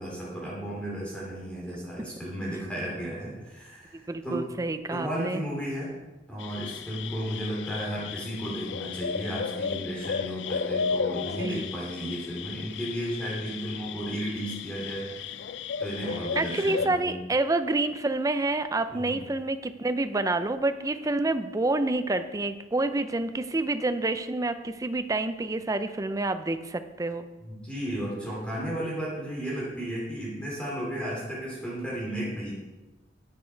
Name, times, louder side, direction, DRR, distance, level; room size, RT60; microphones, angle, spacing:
voice 1, 0.0-4.4 4.9-5.9 6.3-15.4 15.8-17.2 18.9-19.2 27.4-32.5, right 1 dB, 5° left, -6 dB, 2.8 m, -34 dB
voice 2, 4.1-5.4 11.3-11.7 16.4-27.3, right 2 dB, 20° right, 10 dB, 0.5 m, -28 dB
sound 1, 6.4-16.9, left 6 dB, 70° left, 0.4 m, -34 dB
9.5 x 8.4 x 4.6 m, 1.1 s
head